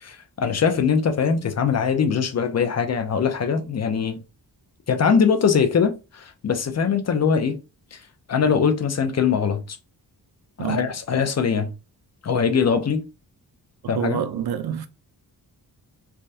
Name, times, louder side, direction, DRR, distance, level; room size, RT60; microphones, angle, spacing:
voice 1, 0.0-4.2 4.9-7.6 7.9-8.0 8.3-9.8 10.6-11.7 12.2-13.0 13.9-14.2, left 6 dB, 40° left, 0.5 m, -22 dB
voice 2, 10.6-10.9 13.8-14.9, right 9 dB, 70° right, 0.5 m, -27 dB
3.4 x 2.2 x 2.6 m
wide cardioid pair, 120°, 40 cm